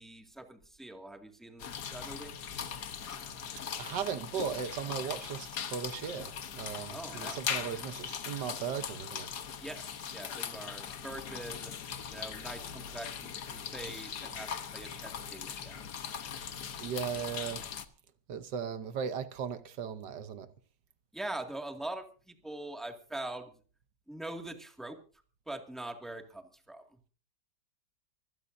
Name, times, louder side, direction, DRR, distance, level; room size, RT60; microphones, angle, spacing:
voice 1, 0.0-2.3 6.9-7.4 9.6-11.7 12.1-15.8 21.1-23.5 24.1-25.0 25.5-26.8, right 1 dB, ahead, 1.9 m, -43 dB
sound 1, 1.6-17.9, left 7 dB, 70° left, 1.7 m, -40 dB
voice 2, 3.8-9.3 16.8-17.6 18.3-20.5, right 7 dB, 75° right, 1.6 m, -37 dB
25.0 x 16.0 x 2.7 m
omnidirectional pair, 1.9 m